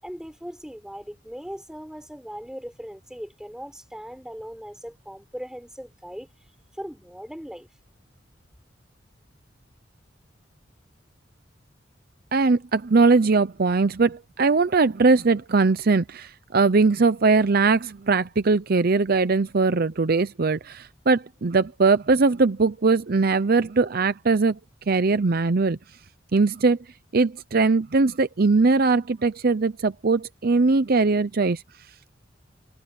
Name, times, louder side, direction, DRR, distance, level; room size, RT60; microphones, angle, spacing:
voice 1, 0.0-6.3 6.8-7.7, equal, 5° right, 5.6 m, -39 dB
voice 2, 12.3-24.6 24.9-25.8 26.3-26.8 27.1-31.6, right 3 dB, 55° right, 0.7 m, -20 dB
head